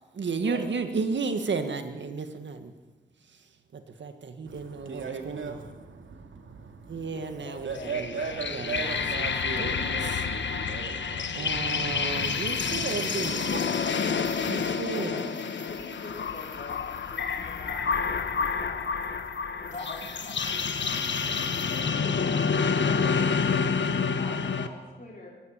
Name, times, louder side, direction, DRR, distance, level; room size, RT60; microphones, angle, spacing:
voice 1, 0.1-2.7 3.2-5.7 6.9-9.3 9.6-10.2 11.3-13.5 14.4-15.2 21.3-21.5, right 4 dB, 70° right, 1.7 m, -34 dB
voice 2, 4.4-14.8, right 5 dB, 90° right, 2.5 m, -39 dB
voice 3, 7.0-8.0 8.6-8.8 14.9-18.8 19.6-22.1 22.9-23.3 23.9-25.3, left 2 dB, 40° left, 5.1 m, -44 dB
sound 1, 7.7-24.7, left 5 dB, 70° left, 1.3 m, -28 dB
sound 2, 12.0-21.8, right 4 dB, 45° right, 3.4 m, -53 dB
24.0 x 12.5 x 9.1 m
wide cardioid pair, 130°, 19 cm